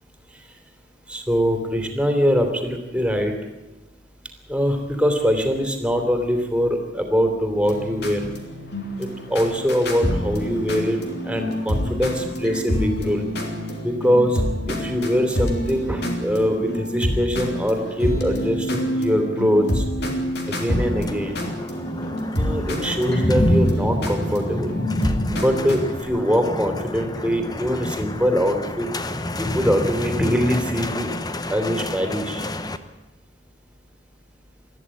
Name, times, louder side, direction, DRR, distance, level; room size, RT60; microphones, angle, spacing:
voice 1, 1.1-3.3 4.5-8.2 9.0-11.0 11.2-13.2 13.8-14.4 14.7-19.8 20.5-21.4 22.3-24.7 25.4-28.9 29.4-31.1 31.5-32.4, equal, 5° right, 4 dB, 3.2 m, -22 dB
sound 1, 7.6-26.0, equal, 65° left, 3.6 m, -27 dB
sound 2, 20.5-32.8, left 1 dB, 20° left, 1.0 m, -27 dB
21.0 x 14.0 x 10.0 m, 1.1 s
head